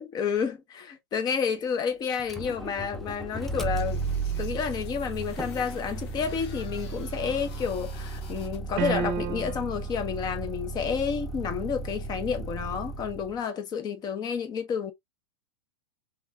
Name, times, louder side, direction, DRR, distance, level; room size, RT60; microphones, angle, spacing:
voice 1, 0.0-4.0 4.4-14.9, left 6 dB, 25° left, 1.0 m, -30 dB
Motor vehicle (road), 2.2-13.4, right 3 dB, ahead, 0.6 m, -35 dB
sound 1, 3.7-8.6, left 7 dB, 65° left, 1.3 m, -50 dB
sound 2, 8.8-9.8, right 8 dB, 40° right, 0.8 m, -30 dB
4.1 x 3.7 x 2.3 m
supercardioid pair, 135°, 15 cm